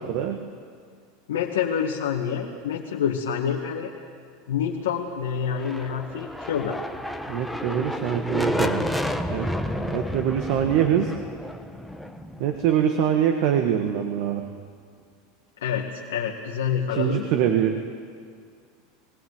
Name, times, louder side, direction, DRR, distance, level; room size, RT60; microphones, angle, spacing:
voice 1, 0.1-0.4 7.3-8.8 9.3-9.5 9.8-11.1 12.4-14.4 16.9-17.9, right 9 dB, 60° right, 5 dB, 1.5 m, -24 dB
voice 2, 1.3-3.9 4.5-6.8 15.6-17.3, left 8 dB, 85° left, -2 dB, 1.8 m, -27 dB
sound 1, 5.4-13.2, equal, ahead, 1.1 m, -31 dB
21.0 x 16.0 x 9.6 m, 2.1 s
supercardioid pair, 110°, 0 cm